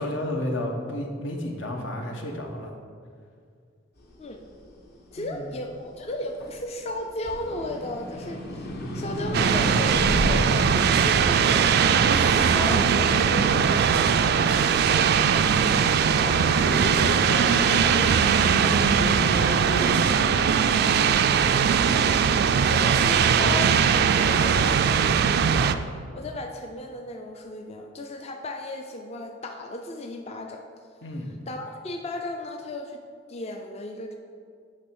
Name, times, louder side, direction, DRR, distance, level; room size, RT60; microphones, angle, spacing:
voice 1, 0.0-2.7 5.2-5.5 16.2-20.5 31.0-31.3, left 1 dB, 80° left, 2 dB, 1.0 m, -31 dB
sound 1, 4.1-6.7 7.1-13.8, equal, 55° left, 1.0 m, -32 dB
voice 2, 5.1-11.6 12.1-13.7 22.7-25.7 26.1-30.6 31.5-33.0 33.3-34.2, left 1 dB, 35° left, 3 dB, 0.4 m, -35 dB
sound 2, 9.3-25.7, right 7 dB, 55° right, 0.3 m, -20 dB
8.8 x 3.3 x 6.1 m, 2.1 s
head